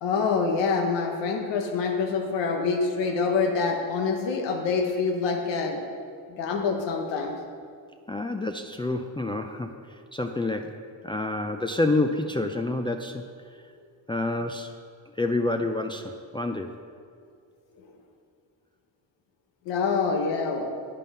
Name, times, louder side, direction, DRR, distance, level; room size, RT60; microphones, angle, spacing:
voice 1, 0.0-5.8 6.3-7.4 19.7-20.7, left 4 dB, 90° left, 3 dB, 1.1 m, -26 dB
voice 2, 8.1-13.2 14.1-14.8 15.2-16.7, left 2 dB, 10° left, 4 dB, 0.4 m, -28 dB
10.0 x 5.5 x 5.4 m, 2.2 s
cardioid pair, 85°, 42 cm